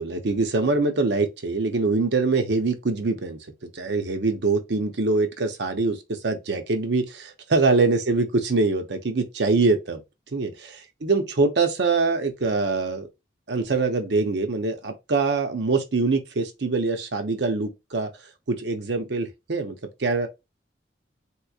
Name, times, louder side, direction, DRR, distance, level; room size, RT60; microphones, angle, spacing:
voice 1, 0.0-10.0 10.3-10.7 11.0-13.1 13.5-18.1 18.5-19.7 20.0-20.3, right 3 dB, 75° right, 0.7 m, -24 dB
3.4 x 3.0 x 2.3 m
head